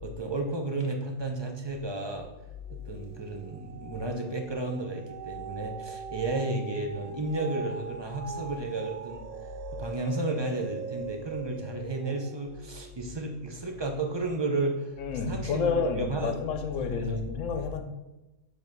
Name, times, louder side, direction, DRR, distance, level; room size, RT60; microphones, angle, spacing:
voice 1, 0.0-2.3 2.7-9.3 9.7-14.9 15.3-16.3 16.8-17.2, right 2 dB, 30° right, 0.5 m, -33 dB
sound 1, 1.7-2.1 2.5-15.0 15.5-15.6, right 5 dB, 85° right, 1.2 m, -42 dB
voice 2, 14.9-17.8, left 5 dB, 65° left, 1.1 m, -30 dB
5.4 x 4.0 x 6.0 m
omnidirectional pair, 1.5 m